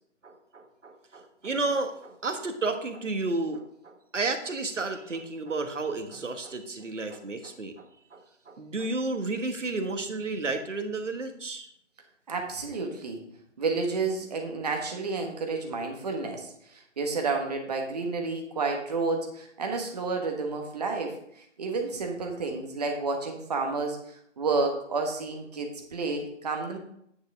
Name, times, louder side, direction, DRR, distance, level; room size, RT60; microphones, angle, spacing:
voice 1, 0.2-7.8 8.1-11.7, right 3 dB, 75° right, 7 dB, 1.5 m, -32 dB
voice 2, 12.3-13.2 13.6-26.8, right 3 dB, 35° right, 3 dB, 1.4 m, -30 dB
9.5 x 6.8 x 3.6 m, 0.72 s
figure-of-eight pair, 155°, 37 cm